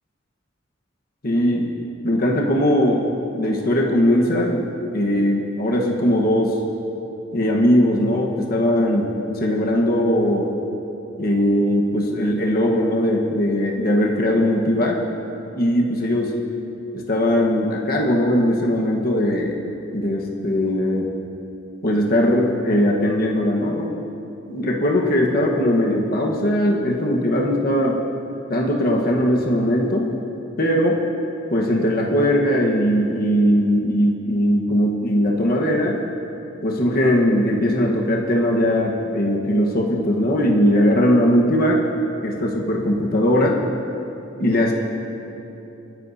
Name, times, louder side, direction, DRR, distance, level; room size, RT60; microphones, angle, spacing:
voice 1, 1.2-1.7 2.0-3.1 3.3-6.6 7.3-10.5 11.2-15.0 15.5-16.3 16.9-19.6 19.9-21.1 21.8-23.9 24.5-28.0 28.5-30.1 30.6-31.0 31.5-36.0 36.6-41.8 42.2-43.6 44.4-44.7, equal, 50° left, -1 dB, 1.3 m, -19 dB
26.0 x 11.0 x 2.8 m, 2.9 s
head